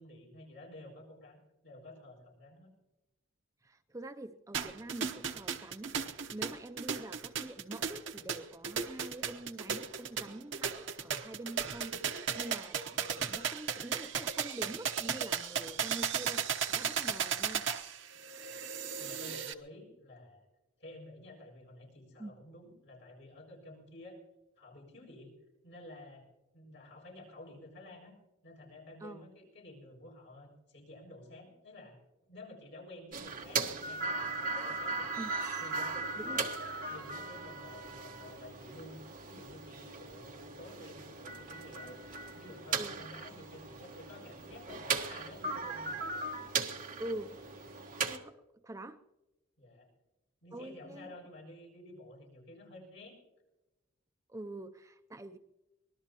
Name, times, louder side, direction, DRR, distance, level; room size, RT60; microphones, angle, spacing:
voice 1, 0.0-1.4 1.6-2.7 18.4-18.6 19.0-20.5 20.8-24.2 24.6-25.3 25.6-26.3 26.5-28.2 28.4-32.0 32.3-35.1 35.6-36.4 36.9-42.0 42.3-46.2 49.6-49.9 50.4-53.2, left 1 dB, 60° left, -1 dB, 7.3 m, -51 dB
voice 2, 3.6-17.7 22.2-22.3 29.0-29.2 35.2-35.3 36.2-36.4 42.8-42.9 47.0-47.4 48.1-48.4 48.6-49.0 50.5-51.1 54.3-55.4, right 1 dB, 15° right, 8 dB, 0.4 m, -45 dB
sound 1, 4.5-19.5, right 7 dB, 65° right, 1.0 m, -35 dB
sound 2, 33.1-48.2, right 4 dB, 40° right, 1.3 m, -38 dB
25.0 x 20.0 x 2.9 m, 1.0 s
head